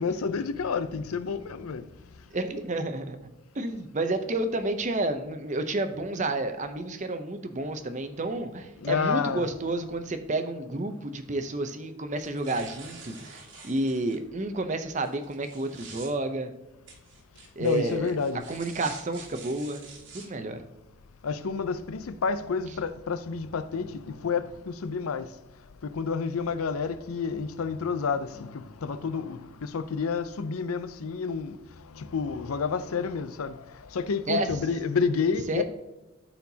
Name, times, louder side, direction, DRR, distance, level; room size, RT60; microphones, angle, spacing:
voice 1, 0.0-1.9 8.8-9.5 17.6-18.4 21.2-25.3 25.8-31.6 31.9-33.6 33.9-35.6, left 5 dB, 90° left, 0.5 m, -29 dB
voice 2, 2.3-3.2 3.5-16.5 17.6-18.2 18.5-20.6 34.3-34.5 35.5-35.6, right 2 dB, 35° right, 0.6 m, -30 dB
sound 1, 12.2-14.2 15.0-16.1 16.9-20.3, right 4 dB, 60° right, 1.5 m, -47 dB
13.0 x 4.4 x 2.8 m
head